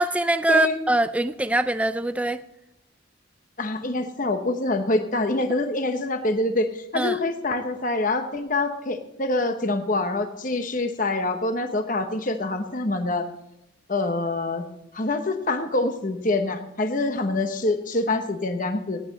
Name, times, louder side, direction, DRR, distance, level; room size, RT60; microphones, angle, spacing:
voice 1, 0.0-2.4 6.9-7.2, right 2 dB, 5° right, 12 dB, 0.4 m, -23 dB
voice 2, 3.6-13.3 13.9-14.7 14.9-19.0, left 2 dB, 40° left, 7 dB, 1.0 m, -25 dB
18.0 x 8.7 x 4.0 m, 0.81 s
head